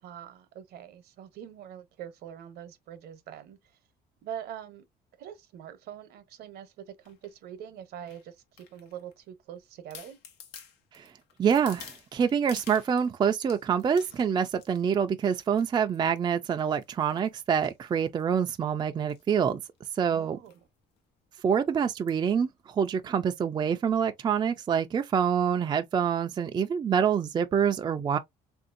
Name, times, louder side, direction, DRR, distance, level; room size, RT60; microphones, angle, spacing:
voice 1, 0.0-3.6 4.2-4.8 5.2-10.2 20.1-20.7, right 9 dB, 70° right, 0.8 m, -44 dB
sound 1, 7.0-7.3 8.1-9.1 9.6-9.7 9.9-13.1 13.5-14.9 15.4-15.7 15.9-16.3 16.7-18.5 19.0-19.2 19.5-19.6 19.8-20.0 20.5-20.6 21.0-21.1 22.1-22.3 22.9-23.0, left 7 dB, 85° left, 0.9 m, -50 dB
voice 2, 11.4-19.6 20.0-20.4 21.4-28.2, right 7 dB, 25° right, 0.3 m, -26 dB
3.5 x 2.6 x 2.5 m
cardioid pair, 110°, 17 cm